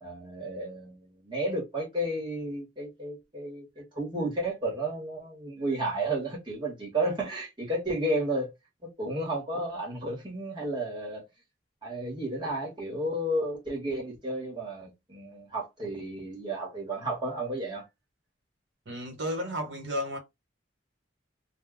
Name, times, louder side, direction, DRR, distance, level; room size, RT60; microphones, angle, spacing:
voice 1, 0.0-8.5 8.8-11.2 11.8-17.8, right 1 dB, 25° right, 1.0 m, -32 dB
voice 2, 18.9-20.2, equal, 70° right, 1.1 m, -33 dB
2.1 x 2.0 x 3.5 m
head